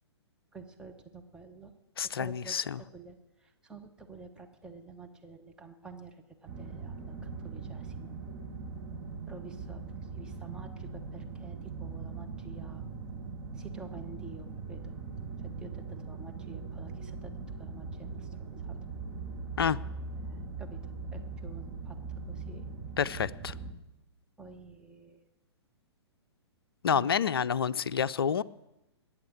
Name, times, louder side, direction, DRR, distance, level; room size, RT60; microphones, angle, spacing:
voice 1, 0.5-1.7 2.0-8.1 9.3-12.8 13.5-15.0 15.4-17.3 17.6-18.8 20.2-22.7 24.4-25.2 26.9-27.2, right 4 dB, 5° right, 3 dB, 1.1 m, -50 dB
voice 2, 2.0-2.8 19.6-19.8 23.0-23.5 26.8-28.4, left 7 dB, 55° left, 17 dB, 0.5 m, -28 dB
sound 1, 6.5-23.7, right 4 dB, 25° right, 1.9 m, -41 dB
21.0 x 8.6 x 7.2 m, 0.94 s
figure-of-eight pair, 115°, 14 cm